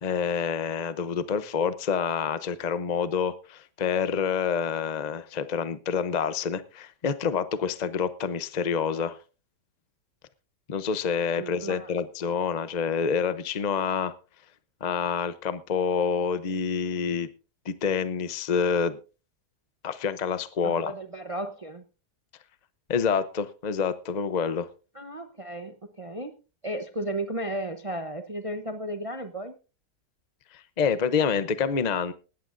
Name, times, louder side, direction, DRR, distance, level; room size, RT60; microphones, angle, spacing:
voice 1, 0.0-9.2 10.7-14.1 14.8-17.3 17.7-19.0 19.8-20.9 22.9-24.7 30.5-32.1, left 6 dB, 50° left, 13 dB, 0.5 m, -27 dB
voice 2, 11.4-11.9 20.6-21.8 24.9-26.3 26.6-29.5, right 1 dB, 30° right, 7 dB, 0.7 m, -34 dB
19.0 x 14.0 x 2.6 m, 0.33 s
omnidirectional pair, 1.8 m